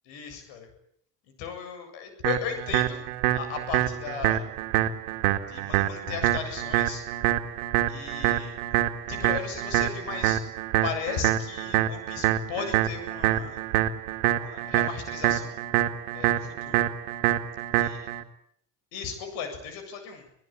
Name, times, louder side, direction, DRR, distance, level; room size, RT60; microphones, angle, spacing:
voice 1, 0.1-0.7 1.4-3.0 3.3-4.4 5.5-7.0 7.9-8.6 9.1-10.4 10.8-13.6 14.3-15.6 16.1-16.8 17.8-18.1 18.9-20.3, left 6 dB, 75° left, 8 dB, 7.8 m, -36 dB
sound 1, 2.2-18.2, right 14 dB, 85° right, 2.1 m, -26 dB
27.0 x 18.0 x 9.0 m, 0.68 s
supercardioid pair, 95°, 45 cm